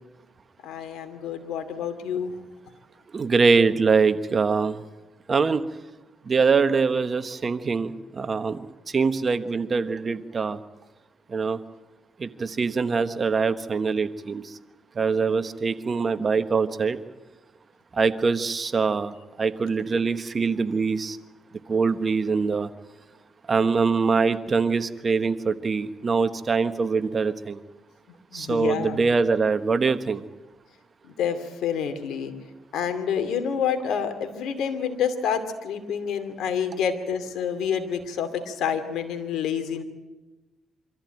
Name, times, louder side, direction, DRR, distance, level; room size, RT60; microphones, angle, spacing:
voice 1, 0.6-2.3 28.3-29.0 31.2-32.3 32.7-39.8, left 7 dB, 80° left, 8 dB, 2.5 m, -28 dB
voice 2, 3.1-4.8 5.3-5.6 6.3-10.6 11.3-11.6 12.2-14.5 15.0-17.0 17.9-21.2 21.7-22.7 23.5-27.6 28.3-30.2, right 4 dB, 40° right, 11 dB, 1.1 m, -23 dB
25.0 x 14.0 x 9.1 m, 1.2 s
cardioid pair, 90°, 0 cm